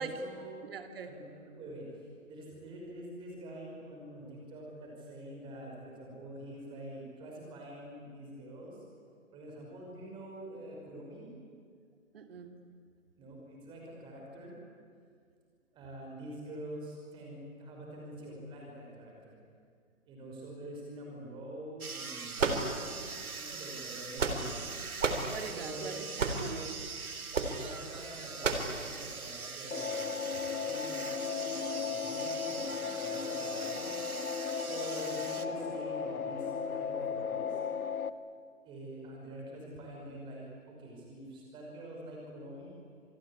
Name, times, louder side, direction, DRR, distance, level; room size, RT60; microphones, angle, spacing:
voice 1, 0.0-0.5 1.1-8.8 9.3-11.3 13.2-14.5 15.7-19.4 20.0-22.8 23.3-24.7 25.5-25.9 27.4-34.0 34.6-37.6 38.0-38.1 38.7-42.7, right 1 dB, 10° right, -1 dB, 5.5 m, -46 dB
voice 2, 0.6-1.2 12.1-12.5 25.3-26.8, right 5 dB, 40° right, 7 dB, 2.6 m, -42 dB
sound 1, 21.8-35.5, right 5 dB, 90° right, 2.3 m, -43 dB
sound 2, 22.4-23.1 23.9-24.6 25.0-25.3 26.2-26.5 27.3-27.6 28.4-28.7, right 4 dB, 60° right, 3.7 m, -30 dB
sound 3, 29.7-38.1, left 6 dB, 85° left, 1.5 m, -36 dB
27.0 x 21.5 x 9.9 m, 2.1 s
hypercardioid pair, 160°, 42 cm